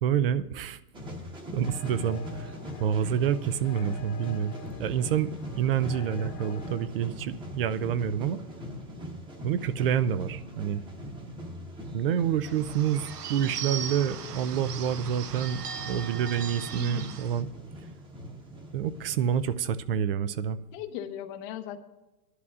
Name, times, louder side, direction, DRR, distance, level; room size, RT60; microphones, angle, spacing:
voice 1, 0.0-0.8 1.5-2.5 2.8-8.4 9.4-10.8 11.9-17.5 18.7-20.6, right 8 dB, 40° right, 15 dB, 0.4 m, -28 dB
sound 1, 0.9-19.6, equal, 10° right, 1.0 m, -42 dB
sound 2, 1.6-6.9, left 8 dB, 55° left, 1.5 m, -47 dB
Bird / Bell, 12.4-17.4, right 7 dB, 75° right, 1.1 m, -38 dB
voice 2, 16.7-17.2 20.7-21.8, left 10 dB, 30° left, 11 dB, 0.7 m, -38 dB
21.5 x 11.0 x 2.4 m, 1.1 s
hypercardioid pair, 140°, 46 cm